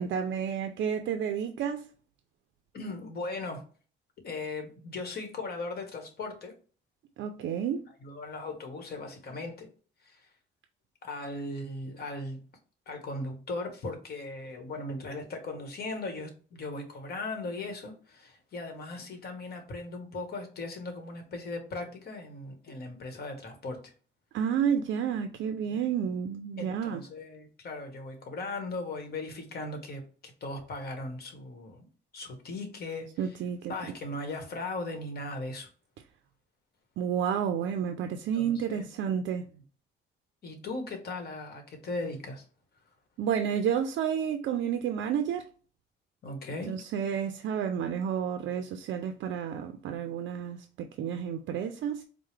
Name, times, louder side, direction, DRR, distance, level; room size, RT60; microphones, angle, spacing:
voice 1, 0.0-1.9 7.2-7.8 24.3-27.0 33.2-33.7 37.0-39.4 43.2-45.5 46.7-52.0, right 8 dB, 70° right, 0.4 m, -30 dB
voice 2, 2.7-3.6 4.2-6.5 8.0-9.7 10.0-10.3 11.0-12.4 12.9-23.9 25.7-25.8 26.6-31.9 32.1-33.4 33.7-35.7 38.3-38.8 39.5-39.6 40.4-42.4 46.2-46.7, left 2 dB, 50° left, 1.1 m, -38 dB
4.5 x 2.0 x 3.2 m
cardioid pair, 90°, 20 cm